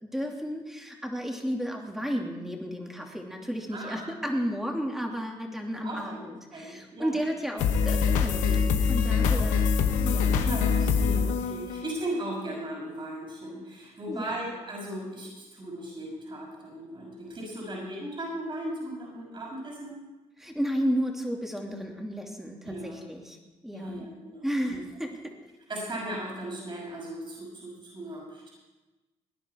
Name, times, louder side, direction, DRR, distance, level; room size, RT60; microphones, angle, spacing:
voice 1, 0.0-9.7 10.0-10.4 14.1-14.4 20.4-23.4 23.6-24.1 24.4-25.2, equal, 5° right, 1 dB, 2.9 m, -33 dB
voice 2, 3.7-4.0 5.7-6.2 6.5-7.2 9.3-9.6 10.4-20.0 22.6-23.0 23.7-24.8 25.7-28.5, right 1 dB, 40° right, -3 dB, 6.0 m, -37 dB
sound 1, 7.6-12.3, left 6 dB, 90° left, 1.0 m, -24 dB
19.0 x 10.0 x 4.7 m, 1.2 s
supercardioid pair, 70°, 12 cm